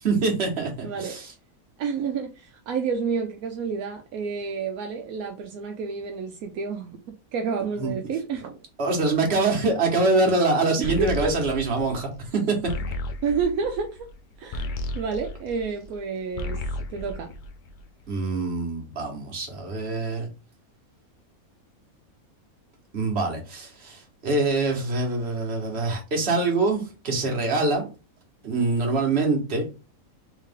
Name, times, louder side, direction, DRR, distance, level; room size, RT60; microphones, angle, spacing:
voice 1, 0.0-1.3 7.8-7.9 8.8-12.6 18.1-20.3 22.9-27.9 28.4-29.7, right 3 dB, 45° right, 1.5 m, -24 dB
voice 2, 0.8-1.1 1.8-7.0 7.3-8.6 10.8-11.3 13.2-14.1 14.4-16.6 16.9-17.3, right 5 dB, 75° right, 1.1 m, -29 dB
sound 1, 10.8-16.0 16.3-18.0, left 2 dB, 75° left, 0.4 m, -34 dB
3.6 x 3.2 x 3.4 m
omnidirectional pair, 1.5 m